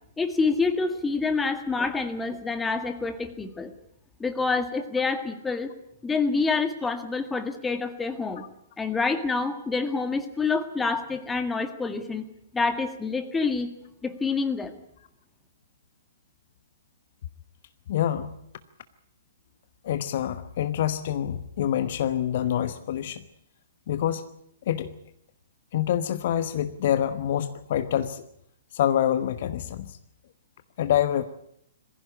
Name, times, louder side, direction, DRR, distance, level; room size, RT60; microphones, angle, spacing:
voice 1, 0.2-3.7 4.2-5.7 6.0-8.4 8.8-12.3 12.5-13.7 14.0-14.7, left 4 dB, 10° left, 8 dB, 1.9 m, -27 dB
voice 2, 17.9-18.3 19.8-23.2 23.9-24.3 24.7-24.9 25.7-28.3 28.7-30.0 30.8-31.2, left 10 dB, 50° left, 12 dB, 1.1 m, -26 dB
22.5 x 15.5 x 9.9 m, 0.75 s
figure-of-eight pair, 115°, 0 cm